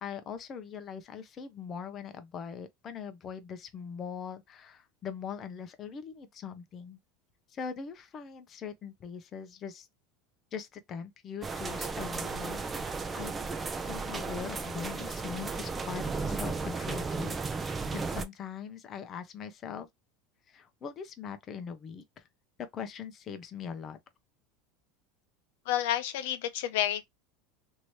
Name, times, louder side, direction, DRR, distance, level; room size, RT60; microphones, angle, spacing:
voice 1, 0.0-7.0 7.5-9.9 10.5-19.9 20.5-22.2 22.7-24.0, left 7 dB, 35° left, 0.6 m, -41 dB
sound 1, 11.4-18.2, right 4 dB, 20° right, 0.5 m, -34 dB
voice 2, 25.7-27.0, left 12 dB, 80° left, 0.5 m, -30 dB
3.0 x 2.7 x 3.0 m
supercardioid pair, 130°, 0 cm